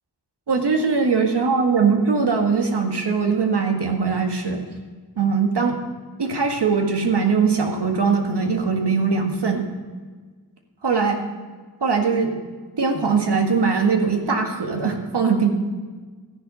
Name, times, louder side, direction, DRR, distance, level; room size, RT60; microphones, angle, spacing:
voice 1, 0.5-4.6 5.2-5.8 6.2-9.7 10.8-11.2 11.8-12.3 12.8-15.5, right 5 dB, 80° right, 3 dB, 1.9 m, -21 dB
14.0 x 10.5 x 5.6 m, 1.4 s
wide cardioid pair, 95°, 40 cm